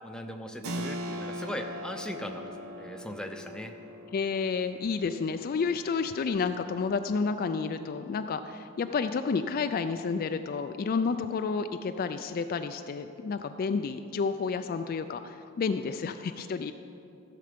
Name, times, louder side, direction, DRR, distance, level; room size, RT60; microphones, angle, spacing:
voice 1, 0.0-3.7, equal, 5° left, 4 dB, 0.6 m, -39 dB
Keyboard (musical), 0.6-11.0, equal, 80° right, 0.8 m, -43 dB
voice 2, 4.1-16.7, left 5 dB, 45° left, 8 dB, 0.3 m, -30 dB
15.0 x 6.7 x 5.1 m, 2.8 s
head